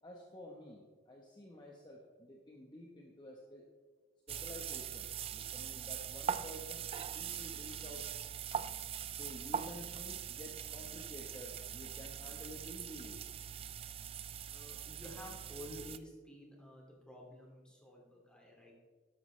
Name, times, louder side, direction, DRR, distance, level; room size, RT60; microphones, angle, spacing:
voice 1, 0.0-3.6 4.3-6.9 7.1-8.1 9.2-13.2, left 1 dB, 25° left, -1 dB, 1.2 m, -51 dB
sound 1, 4.3-16.0, right 8 dB, 30° right, 0.3 m, -42 dB
voice 2, 14.5-18.7, left 1 dB, 5° left, -2 dB, 2.4 m, -51 dB
13.0 x 12.0 x 3.3 m, 1.4 s
head